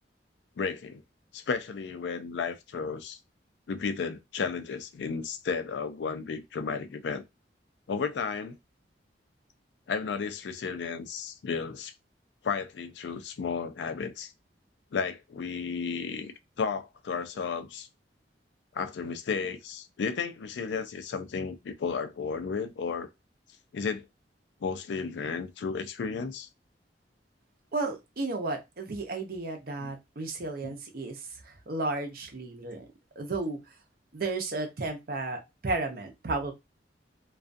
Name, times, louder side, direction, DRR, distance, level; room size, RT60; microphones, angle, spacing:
voice 1, 0.6-1.0 1.3-3.2 3.7-7.2 7.9-8.6 9.9-11.9 12.4-14.3 14.9-16.3 16.6-17.9 18.7-23.1 23.7-24.1 24.6-26.5 29.8-29.9 30.6-30.7, left 5 dB, 85° left, 0.4 m, -33 dB
voice 2, 27.7-31.2 31.7-32.9 33.2-33.6 34.1-36.5, right 3 dB, 55° right, 0.6 m, -33 dB
2.4 x 2.3 x 2.5 m
head